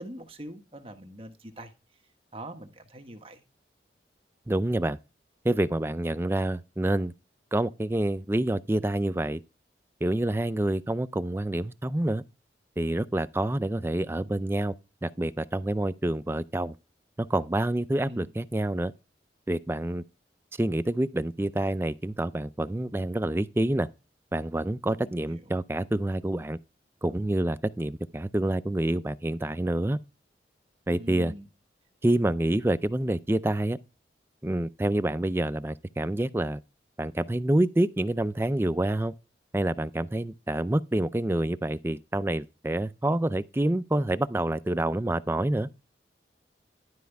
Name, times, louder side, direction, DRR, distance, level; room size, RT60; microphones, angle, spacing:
voice 1, 0.0-1.7 2.3-3.4 18.0-18.3 24.9-25.6 30.9-31.5, right 1 dB, 30° right, 1.4 m, -43 dB
voice 2, 4.5-5.0 5.4-7.1 7.5-9.4 10.0-12.2 12.8-14.7 15.0-16.8 17.2-18.9 19.5-20.0 20.5-23.9 24.3-26.6 27.0-30.0 30.9-31.3 32.0-33.8 34.4-36.6 37.0-39.1 39.5-45.7, right 1 dB, 15° right, 0.4 m, -27 dB
11.5 x 5.1 x 3.4 m
head